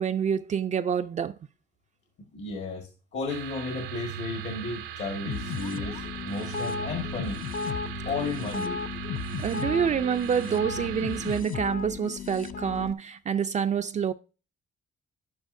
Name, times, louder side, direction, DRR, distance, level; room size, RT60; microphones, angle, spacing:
voice 1, 0.0-1.4 9.4-14.1, right 7 dB, 35° right, 0.4 m, -27 dB
voice 2, 2.3-7.4 8.0-8.9, left 3 dB, 65° left, 1.7 m, -34 dB
sound 1, 3.3-11.4, right 11 dB, 90° right, 0.7 m, -38 dB
sound 2, 5.3-12.9, left 6 dB, 45° left, 0.5 m, -35 dB
10.5 x 8.9 x 2.6 m
cardioid pair, 90°, 20 cm